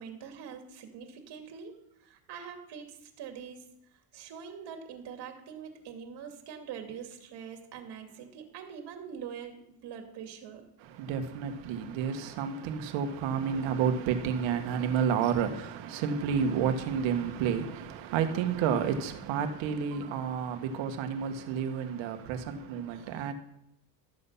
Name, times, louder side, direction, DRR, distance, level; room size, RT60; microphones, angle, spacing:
voice 1, 0.0-3.6 3.9-10.7, right 7 dB, 55° right, 2.7 m, -44 dB
voice 2, 10.8-23.3, right 7 dB, 75° right, 1.8 m, -30 dB
13.5 x 7.9 x 5.7 m
supercardioid pair, 105°, 46 cm